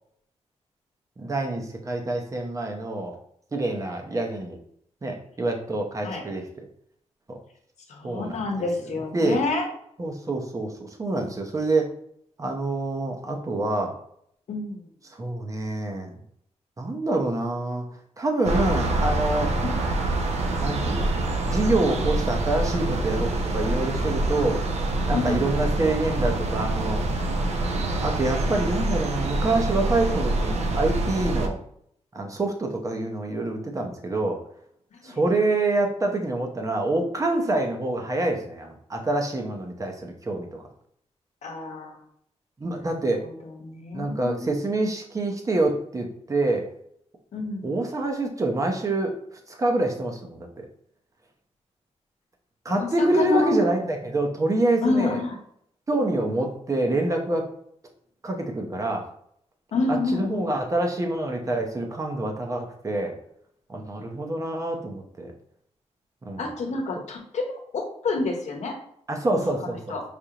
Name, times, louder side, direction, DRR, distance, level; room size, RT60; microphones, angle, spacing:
voice 1, 1.2-3.1 3.5-4.6 5.0-6.4 7.3-7.4 8.0-8.7 9.1-9.4 10.0-11.9 12.4-13.9 15.1-16.2 16.8-17.9 18.2-19.5 20.6-21.1 21.4-24.6 25.1-27.0 28.0-31.5 32.1-34.4 35.0-40.5 42.6-43.2 43.9-46.7 47.6-49.1 49.5-50.7 52.6-55.2 55.9-57.5 58.2-59.0 59.9-63.1 63.7-65.3 66.2-66.5 69.1-70.0, right 2 dB, 30° right, 2 dB, 0.7 m, -26 dB
voice 2, 7.9-9.7 14.5-14.8 19.6-19.7 25.1-25.5 35.0-35.2 41.4-42.0 43.2-44.5 47.3-47.7 52.7-53.6 54.8-55.4 59.7-60.5 66.4-68.8 69.3-69.4 69.9-70.0, left 2 dB, 80° left, 2 dB, 0.9 m, -28 dB
sound 1, 18.4-31.5, right 2 dB, 70° right, 0.6 m, -26 dB
5.0 x 2.6 x 2.8 m, 0.68 s
wide cardioid pair, 125°, 12 cm